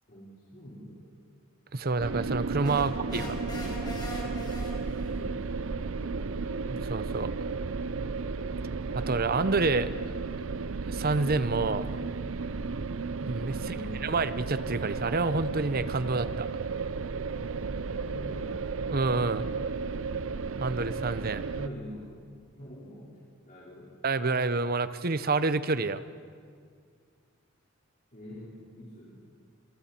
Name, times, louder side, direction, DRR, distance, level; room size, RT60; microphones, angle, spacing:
voice 1, 0.1-1.0 2.8-3.8 5.0-5.4 13.6-14.2 18.1-18.6 21.5-22.1 22.6-23.2 23.4-23.9 28.1-29.2, equal, 45° left, -8 dB, 4.8 m, -44 dB
voice 2, 1.7-3.3 6.7-7.3 8.9-9.9 10.9-12.0 13.2-16.5 18.9-19.5 20.6-21.4 24.0-26.0, right 3 dB, 50° right, 13 dB, 0.8 m, -28 dB
sound 1, 2.0-21.7, right 4 dB, 80° right, 0.6 m, -34 dB
sound 2, 2.6-5.2, left 1 dB, 20° left, 4.4 m, -41 dB
29.5 x 26.5 x 4.5 m, 2.1 s
head